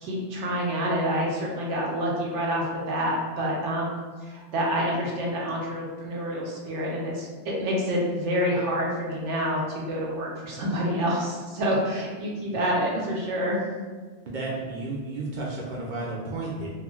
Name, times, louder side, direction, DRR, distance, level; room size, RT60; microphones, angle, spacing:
voice 1, 0.0-13.6, equal, 85° right, -3 dB, 1.1 m, -27 dB
voice 2, 14.3-16.7, right 2 dB, 55° right, -4 dB, 0.5 m, -32 dB
3.5 x 2.2 x 2.3 m, 1.5 s
omnidirectional pair, 1.2 m